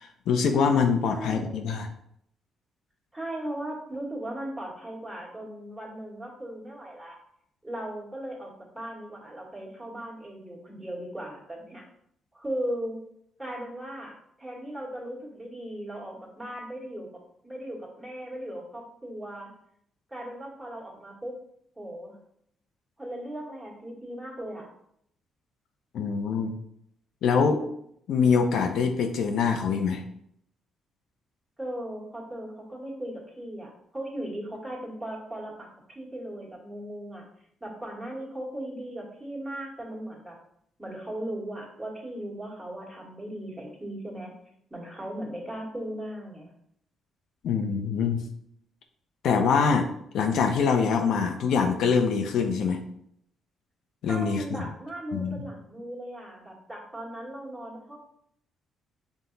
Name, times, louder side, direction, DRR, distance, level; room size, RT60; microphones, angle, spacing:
voice 1, 0.0-1.9 25.9-26.5 27.2-27.6 28.1-30.0 47.4-48.2 49.2-49.9 50.1-52.8 54.0-54.7 55.1-55.4, left 5 dB, 75° left, 5 dB, 0.5 m, -24 dB
voice 2, 1.1-1.7 3.1-7.2 7.6-11.8 12.3-13.0 13.4-19.5 20.1-21.3 21.8-22.2 23.0-24.7 31.6-37.2 37.6-40.4 40.8-44.3 44.7-46.5 54.1-58.0, right 1 dB, 10° right, -3 dB, 1.5 m, -37 dB
5.8 x 2.0 x 3.9 m, 0.72 s
cardioid pair, 90°, 0 cm